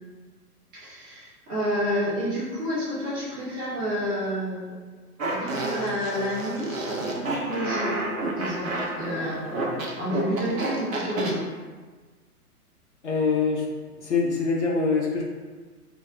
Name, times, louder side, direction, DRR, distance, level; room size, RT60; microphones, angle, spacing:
voice 1, 0.7-4.8 5.3-8.0 8.4-9.7 10.0-11.4, equal, 15° right, -10 dB, 0.7 m, -29 dB
Fart, 5.2-11.3, right 2 dB, 60° right, 0.8 m, -30 dB
voice 2, 13.0-13.7 13.9-15.2, left 4 dB, 50° left, -2 dB, 0.6 m, -24 dB
3.4 x 2.1 x 3.7 m, 1.4 s
figure-of-eight pair, 120°, 46 cm